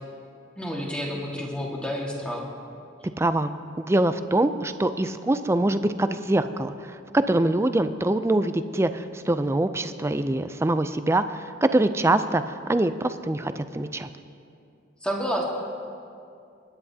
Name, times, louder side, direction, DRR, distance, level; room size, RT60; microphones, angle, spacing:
voice 1, 0.6-2.4 15.0-15.4, equal, 5° left, -2 dB, 1.7 m, -29 dB
voice 2, 3.2-3.5 3.9-14.1, right 1 dB, 15° right, 10 dB, 0.4 m, -24 dB
30.0 x 10.0 x 2.8 m, 2.5 s
head